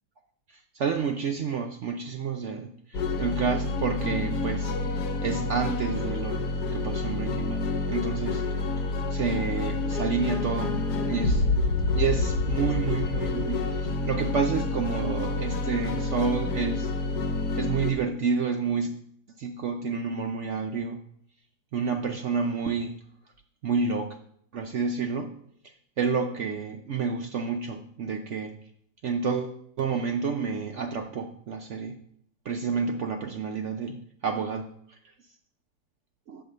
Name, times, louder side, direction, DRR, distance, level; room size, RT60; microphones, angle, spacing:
voice 1, 0.5-8.4 9.1-10.7 11.0-11.5 12.0-16.9 17.6-18.9 19.4-21.0 21.7-22.9 23.6-24.2 24.5-25.3 26.0-28.5 29.0-32.0 32.5-35.0, right 5 dB, 70° right, 4 dB, 0.7 m, -29 dB
sound 1, 2.9-17.9, left 3 dB, 70° left, 1.4 m, -28 dB
7.7 x 4.4 x 6.6 m, 0.68 s
omnidirectional pair, 1.8 m